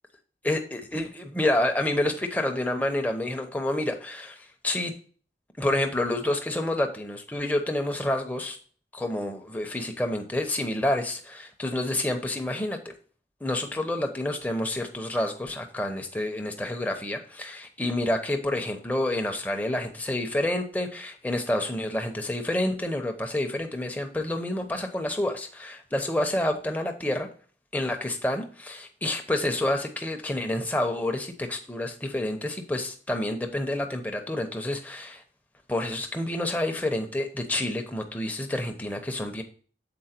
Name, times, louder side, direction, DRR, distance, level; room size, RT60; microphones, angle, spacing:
voice 1, 0.4-4.9 5.6-8.6 8.9-12.9 13.4-27.3 27.7-35.2 35.7-39.4, left 1 dB, 10° left, 4 dB, 0.8 m, -28 dB
7.8 x 4.4 x 4.4 m, 0.43 s
head